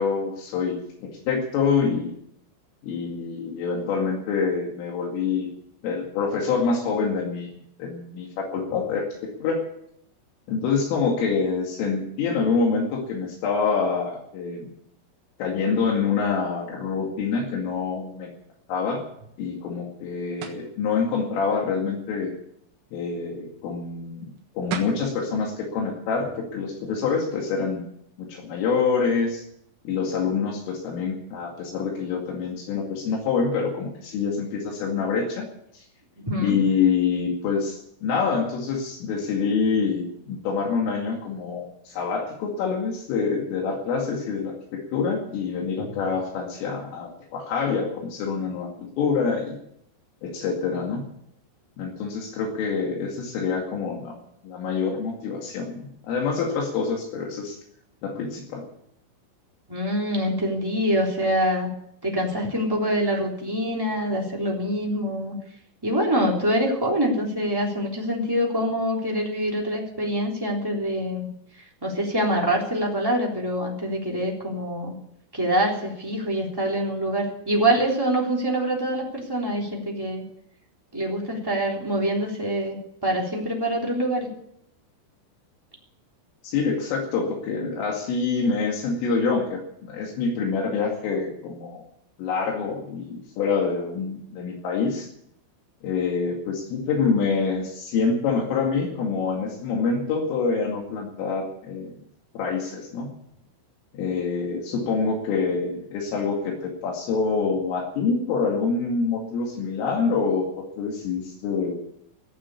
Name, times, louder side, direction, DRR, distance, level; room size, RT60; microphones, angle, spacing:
voice 1, 0.0-2.1 2.8-5.5 5.8-7.5 7.8-9.7 10.5-14.7 15.4-18.3 18.7-19.1 19.4-22.3 22.9-27.8 28.2-29.4 29.8-35.5 35.7-35.8 36.4-49.6 50.2-51.1 51.8-54.1 54.4-57.6 58.0-58.7 86.4-91.8 92.2-95.1 95.8-101.9 102.3-103.1 103.9-111.8, left 5 dB, 75° left, 0 dB, 4.7 m, -26 dB
sound 1, 20.4-20.7 24.4-24.5 24.7-25.1, right 9 dB, 85° right, 4.2 m, -32 dB
voice 2, 36.2-36.6 59.7-61.7 62.0-65.3 65.8-71.3 71.8-74.9 75.3-80.2 80.9-82.8 83.0-84.3, equal, 5° right, -2 dB, 2.2 m, -25 dB
17.5 x 7.8 x 9.7 m, 0.72 s
omnidirectional pair, 5.9 m